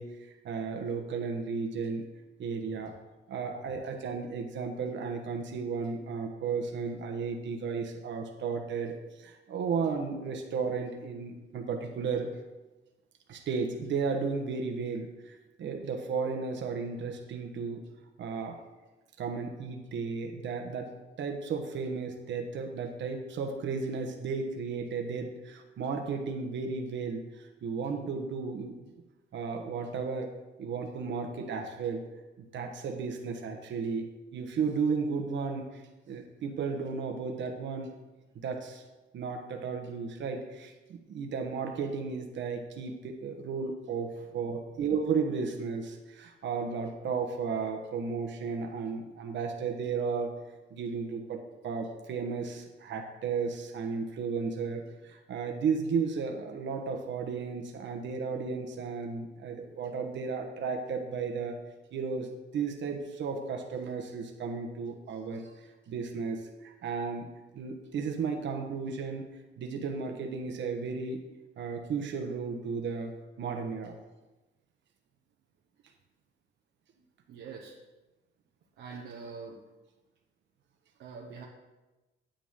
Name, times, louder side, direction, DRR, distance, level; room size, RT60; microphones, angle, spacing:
voice 1, 0.0-2.0 2.4-2.9 3.3-12.4 13.3-17.8 18.2-18.6 19.2-20.9 21.2-28.9 29.3-30.3 30.6-32.0 32.5-34.0 34.3-37.9 38.4-38.8 39.1-50.3 50.7-61.6 61.9-65.6 65.9-67.3 67.5-69.2 69.6-71.2 71.6-73.1 73.4-74.0, right 5 dB, 70° right, 4 dB, 1.2 m, -34 dB
voice 2, 2.4-2.9 44.2-44.3 77.3-77.8 78.8-79.6 81.0-81.4, right 5 dB, 90° right, -2 dB, 1.1 m, -45 dB
9.0 x 8.7 x 3.7 m, 1.1 s
cardioid pair, 90°, 20 cm